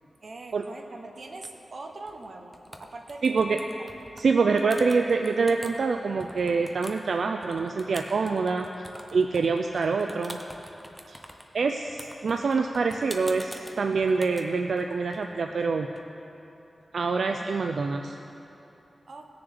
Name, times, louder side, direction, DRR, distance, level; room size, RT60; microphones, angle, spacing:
voice 1, 0.2-3.9 19.1-19.3, right 3 dB, 50° right, 3 dB, 0.9 m, -43 dB
sound 1, 2.1-2.3 2.5-4.2 4.6-5.8 6.2-16.0, equal, ahead, 0.6 m, -45 dB
voice 2, 3.2-3.6 4.2-8.7 9.1-10.4 11.1-11.2 11.5-15.9 16.9-18.1, right 4 dB, 75° right, 5 dB, 0.4 m, -25 dB
18.0 x 6.9 x 3.6 m, 2.9 s
wide cardioid pair, 145°, 0 cm